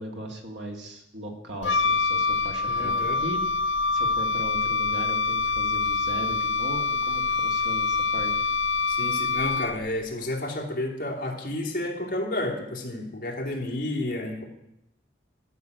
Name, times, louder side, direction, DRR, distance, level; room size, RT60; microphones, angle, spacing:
voice 1, 0.0-3.4 3.9-8.3, equal, 70° right, 2 dB, 2.3 m, -38 dB
Wind instrument woodwind instrument, 1.6-10.0, left 4 dB, 75° left, 0.5 m, -25 dB
voice 2, 2.7-3.2 8.9-14.4, left 1 dB, 45° left, 0 dB, 2.5 m, -31 dB
13.5 x 6.3 x 9.3 m, 0.85 s
head